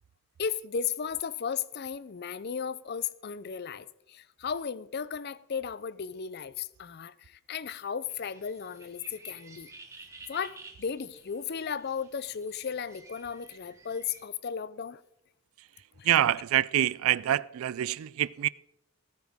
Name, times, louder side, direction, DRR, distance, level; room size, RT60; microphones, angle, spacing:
voice 1, 0.4-9.7 10.3-15.0 16.0-16.1, left 7 dB, 45° left, 0.5 m, -35 dB
sound 1, 8.1-14.3, right 3 dB, 15° right, 1.4 m, -52 dB
voice 2, 16.0-18.5, right 12 dB, 70° right, 0.3 m, -26 dB
19.5 x 9.5 x 3.6 m
head